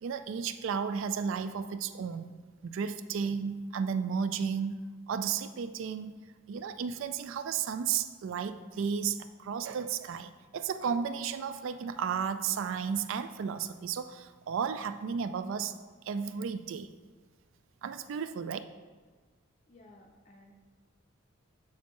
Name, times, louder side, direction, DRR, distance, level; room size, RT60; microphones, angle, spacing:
voice 1, 0.0-2.3 2.6-6.2 6.5-15.7 16.0-16.9 17.8-18.6, right 6 dB, 65° right, 11 dB, 0.3 m, -33 dB
voice 2, 19.7-20.5, left 2 dB, 35° left, 0 dB, 0.5 m, -56 dB
7.2 x 6.3 x 3.1 m, 1.4 s
head